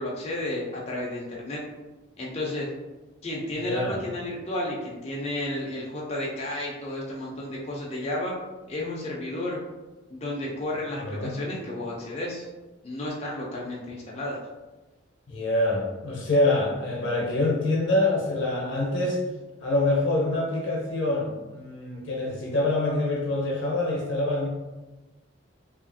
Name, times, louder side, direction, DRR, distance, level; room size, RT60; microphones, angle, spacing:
voice 1, 0.0-1.6 2.2-2.7 3.2-8.3 8.7-9.6 10.1-12.5 12.8-14.4, left 1 dB, 30° left, -4 dB, 0.4 m, -32 dB
voice 2, 3.5-4.0 11.0-11.3 15.3-19.2 19.6-24.5, left 2 dB, 65° left, -2 dB, 0.7 m, -25 dB
2.8 x 2.4 x 2.6 m, 1.1 s
head